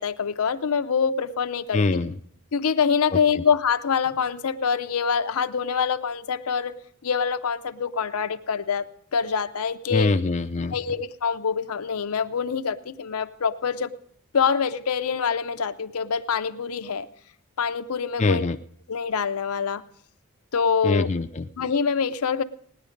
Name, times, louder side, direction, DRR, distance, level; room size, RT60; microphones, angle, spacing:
voice 1, 0.0-1.8 2.5-6.7 7.0-8.9 9.1-10.1 10.7-13.9 14.3-17.1 17.6-18.5 18.9-19.8 20.5-21.1 21.6-22.4, left 6 dB, 75° left, 10 dB, 0.6 m, -25 dB
voice 2, 1.7-2.2 3.1-3.4 9.9-10.8 18.2-18.6 20.8-21.5, left 3 dB, 30° left, 5 dB, 0.5 m, -24 dB
18.0 x 10.0 x 5.1 m, 0.65 s
head